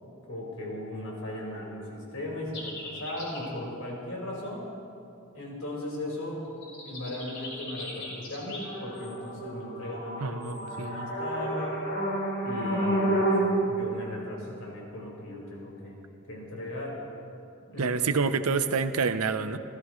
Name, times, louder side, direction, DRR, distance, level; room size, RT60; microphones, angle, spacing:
voice 1, 0.0-4.6 5.3-6.5 6.8-11.9 12.4-16.0 16.3-17.0 17.7-18.1, left 1 dB, 70° left, -3 dB, 4.9 m, -37 dB
sound 1, 2.5-3.5 6.6-13.5, right 1 dB, 55° left, 4.3 m, -31 dB
voice 2, 10.2-11.1 17.8-19.6, right 5 dB, 80° right, 10 dB, 0.7 m, -28 dB
28.5 x 15.0 x 3.2 m, 2.7 s
head